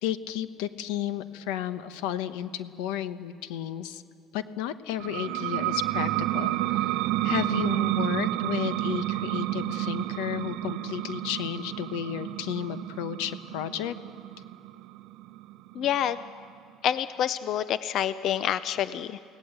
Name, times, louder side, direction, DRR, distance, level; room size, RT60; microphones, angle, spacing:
voice 1, 0.0-4.0 4.3-7.0 7.2-14.0, left 10 dB, 90° left, 12 dB, 1.0 m, -33 dB
sound 1, 5.0-16.3, right 16 dB, 60° right, 0.6 m, -30 dB
voice 2, 15.7-16.2 16.8-19.2, left 10 dB, 45° left, 14 dB, 0.5 m, -27 dB
29.0 x 17.5 x 8.0 m, 2.5 s
cardioid pair, 165°, 0 cm